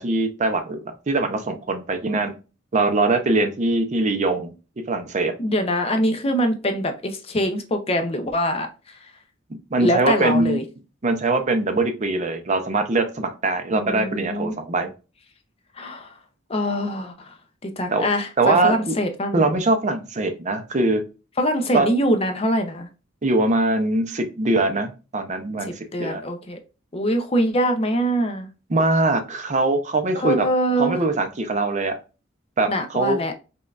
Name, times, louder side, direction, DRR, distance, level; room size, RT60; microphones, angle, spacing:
voice 1, 0.0-2.3 2.7-4.5 4.9-5.3 9.7-10.6 11.0-14.9 17.9-18.1 18.4-18.9 19.3-21.0 21.7-21.9 23.2-26.2 28.7-30.5 30.8-32.0 32.6-33.2, right 2 dB, 35° right, 0.5 m, -22 dB
voice 2, 5.4-9.0 9.8-10.6 13.7-14.6 15.8-16.1 16.5-17.3 17.6-19.5 21.4-22.9 25.6-26.6 26.9-28.5 30.1-31.0 32.7-33.3, equal, 30° left, 0.5 m, -24 dB
5.1 x 2.3 x 2.3 m
head